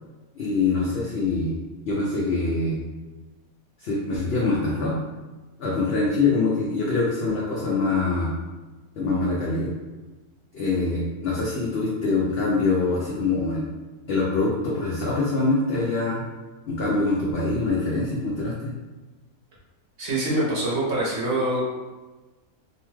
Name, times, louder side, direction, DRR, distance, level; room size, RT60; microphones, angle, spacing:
voice 1, 0.4-1.5 1.9-2.8 3.8-5.0 5.6-8.3 9.0-9.7 10.5-13.7 14.1-16.3 16.7-18.7, left 3 dB, 75° left, -5 dB, 0.5 m, -24 dB
voice 2, 20.0-21.7, right 1 dB, 55° right, -6 dB, 0.9 m, -24 dB
2.7 x 2.2 x 3.0 m, 1.2 s
omnidirectional pair, 1.6 m